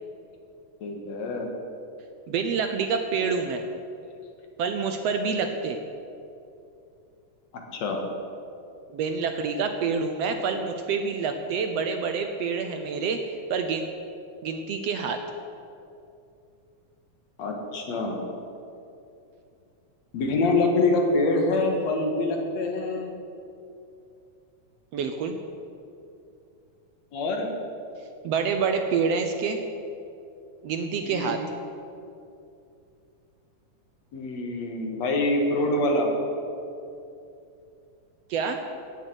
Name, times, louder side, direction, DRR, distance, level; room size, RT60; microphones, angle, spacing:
voice 1, 0.8-1.5 7.5-8.0 17.4-18.2 20.1-23.1 27.1-27.5 31.0-31.4 34.1-36.1, left 2 dB, 65° left, 2 dB, 2.7 m, -25 dB
voice 2, 2.3-3.6 4.6-5.8 8.9-13.9 14.4-15.2 24.9-25.4 28.2-29.6 30.6-31.4 38.3-38.6, right 5 dB, 70° right, 6 dB, 1.7 m, -27 dB
15.5 x 7.7 x 8.1 m, 2.6 s
omnidirectional pair, 3.4 m